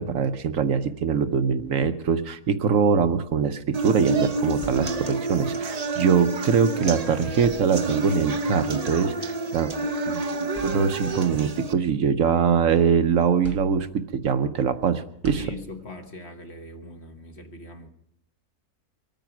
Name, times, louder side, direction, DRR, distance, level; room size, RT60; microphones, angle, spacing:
voice 1, 0.0-9.7 10.1-15.5, right 6 dB, 65° right, 9 dB, 1.1 m, -23 dB
sound 1, 3.7-11.7, right 3 dB, 35° right, 0.7 m, -29 dB
sound 2, 4.6-5.4 6.7-6.8 7.3-8.2 9.3-9.4 10.0-10.1 10.5-11.3 11.8-12.9 13.4-14.2 15.2-16.1, right 2 dB, 15° left, 0.6 m, -43 dB
voice 2, 15.3-17.9, left 2 dB, 45° left, 5 dB, 1.6 m, -40 dB
23.5 x 9.1 x 5.9 m, 0.73 s
omnidirectional pair, 1.6 m